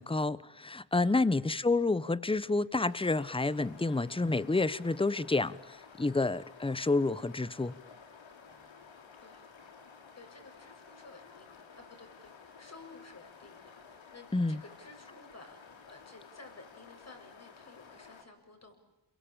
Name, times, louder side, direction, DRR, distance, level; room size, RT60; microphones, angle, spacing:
voice 1, 0.0-7.7 14.3-14.6, left 3 dB, 10° left, 1.0 m, -29 dB
voice 2, 1.0-1.4 9.2-9.5 10.1-15.6 15.9-18.8, left 3 dB, 35° left, 7.5 m, -54 dB
sound 1, 2.8-18.2, left 5 dB, 85° left, 4.2 m, -54 dB
29.5 x 22.5 x 8.9 m
cardioid pair, 95°, 45 cm